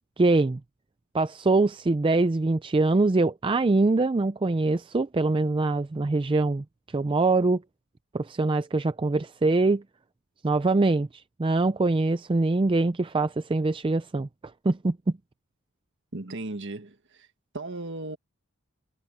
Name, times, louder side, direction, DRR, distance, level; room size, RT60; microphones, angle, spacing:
voice 1, 0.2-0.6 1.1-6.6 6.9-7.6 8.1-9.8 10.4-14.3 14.6-15.0, right 3 dB, 25° right, 0.4 m, -23 dB
voice 2, 16.1-17.3 17.5-18.2, right 2 dB, 55° right, 1.7 m, -36 dB
head